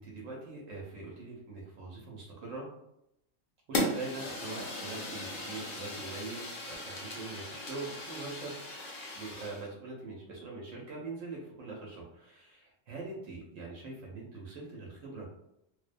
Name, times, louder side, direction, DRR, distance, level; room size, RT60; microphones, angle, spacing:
voice 1, 0.0-2.7 3.7-8.6 9.1-15.3, right 3 dB, 80° right, -3 dB, 1.0 m, -43 dB
Fire, 3.7-9.6, left 1 dB, 80° left, 1.1 m, -37 dB
2.5 x 2.1 x 2.4 m, 0.80 s
omnidirectional pair, 1.3 m